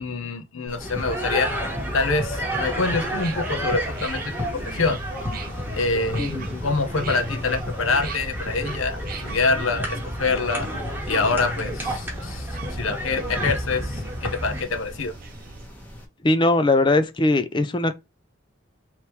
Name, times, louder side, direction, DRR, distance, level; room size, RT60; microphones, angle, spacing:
voice 1, 0.0-1.5 1.9-5.0 5.8-10.7 11.1-15.1, left 3 dB, 85° left, 0.8 m, -26 dB
sound 1, 0.7-16.0, equal, 10° left, 1.0 m, -44 dB
sound 2, 0.8-14.6, equal, 10° right, 1.2 m, -30 dB
sound 3, 2.8-15.7, right 5 dB, 45° right, 0.6 m, -41 dB
voice 2, 6.2-6.6 16.2-17.9, left 2 dB, 25° left, 0.4 m, -20 dB
3.5 x 3.0 x 4.3 m
head